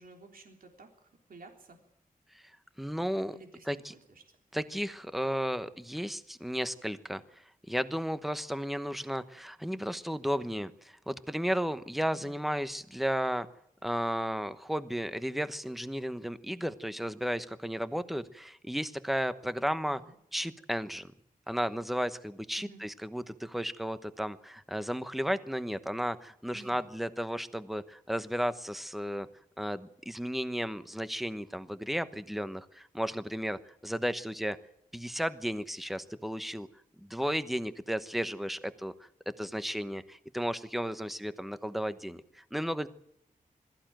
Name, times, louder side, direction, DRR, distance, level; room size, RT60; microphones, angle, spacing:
voice 1, 0.0-1.8 3.3-4.2 12.1-12.4 19.9-20.1 22.6-22.8 26.5-26.8, right 2 dB, 80° right, 3 dB, 3.5 m, -53 dB
voice 2, 2.8-3.4 3.7-3.9 4.5-13.5 13.8-20.0 20.3-21.1 21.5-29.3 29.6-34.6 34.9-36.7 37.0-39.1 39.4-42.9, equal, ahead, 12 dB, 1.0 m, -34 dB
21.5 x 14.5 x 9.1 m, 0.75 s
wide cardioid pair, 150°, 15 cm